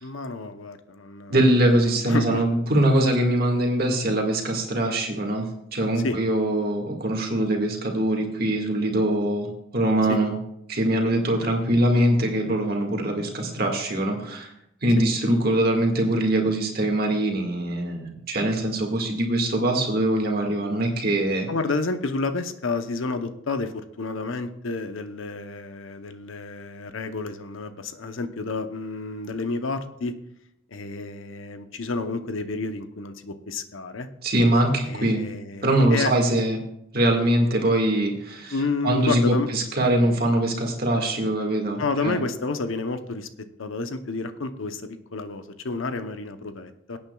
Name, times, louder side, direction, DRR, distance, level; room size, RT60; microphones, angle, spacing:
voice 1, 0.0-1.4 2.1-2.4 6.0-6.2 10.1-10.2 21.5-30.1 30.7-34.1 34.9-36.1 38.5-39.5 41.8-43.3 43.6-47.0, left 3 dB, 80° left, 9 dB, 0.8 m, -30 dB
voice 2, 1.3-5.5 5.7-10.3 10.7-14.5 14.8-21.5 34.2-35.2 35.6-36.6 36.9-38.6 38.8-42.2, right 1 dB, 50° right, 2 dB, 1.9 m, -22 dB
22.0 x 8.7 x 2.3 m, 0.79 s
head